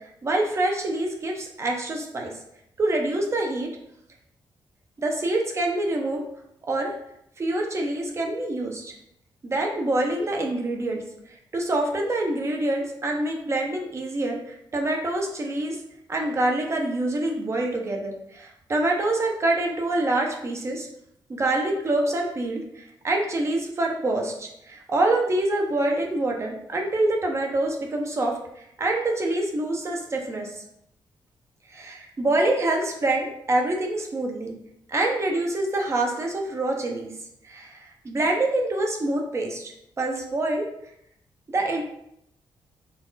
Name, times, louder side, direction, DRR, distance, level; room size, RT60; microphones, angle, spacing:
voice 1, 0.2-2.3 2.8-3.7 5.0-6.2 6.7-6.9 7.4-8.9 9.4-11.0 11.5-15.8 16.1-20.9 21.3-28.4 28.8-30.6 31.7-34.5 34.9-37.1 37.4-40.6 41.5-41.8, right 2 dB, 35° right, 1 dB, 0.7 m, -26 dB
4.1 x 2.4 x 3.9 m, 0.76 s
wide cardioid pair, 125°, 8 cm